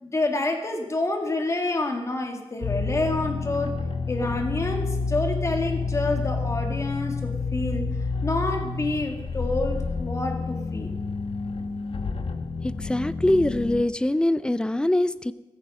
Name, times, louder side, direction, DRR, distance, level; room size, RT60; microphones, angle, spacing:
voice 1, 0.0-3.8 4.1-7.9 8.2-10.9, left 2 dB, 30° left, 4 dB, 2.1 m, -28 dB
sound 1, 2.6-13.8, left 4 dB, 70° left, 1.2 m, -29 dB
voice 2, 12.6-15.3, left 1 dB, 10° left, 15 dB, 0.5 m, -23 dB
15.5 x 14.5 x 5.4 m, 1.1 s
wide cardioid pair, 175°, 10 cm